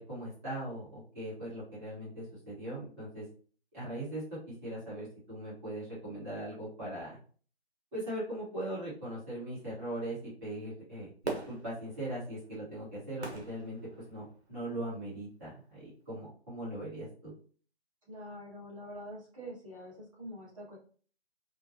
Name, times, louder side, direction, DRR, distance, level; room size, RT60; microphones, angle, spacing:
voice 1, 0.0-3.3 3.7-4.2 4.6-7.2 7.9-13.8 14.1-17.3, right 1 dB, 15° right, -10 dB, 1.2 m, -40 dB
Fireworks, 11.2-14.6 15.1-15.2, right 3 dB, 70° right, 1.0 m, -42 dB
voice 2, 18.0-20.8, equal, 30° right, -8 dB, 1.5 m, -45 dB
3.7 x 2.2 x 2.6 m, 0.43 s
figure-of-eight pair, 150°, 34 cm